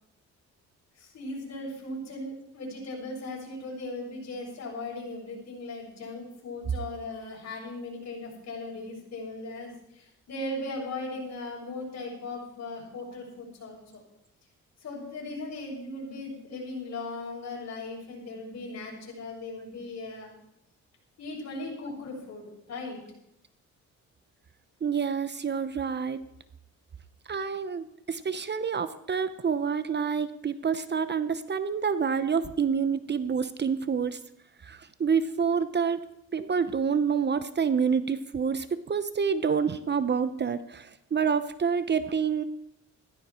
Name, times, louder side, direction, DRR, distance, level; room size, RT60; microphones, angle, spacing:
voice 1, 1.0-14.0 14.8-20.4 21.2-23.0, left 2 dB, 60° left, -2 dB, 7.5 m, -38 dB
voice 2, 24.8-26.2 27.3-34.2 34.6-36.0 36.3-42.4, right 6 dB, 35° right, 12 dB, 0.9 m, -28 dB
16.0 x 14.5 x 4.5 m, 0.79 s
cardioid pair, 90°, 30 cm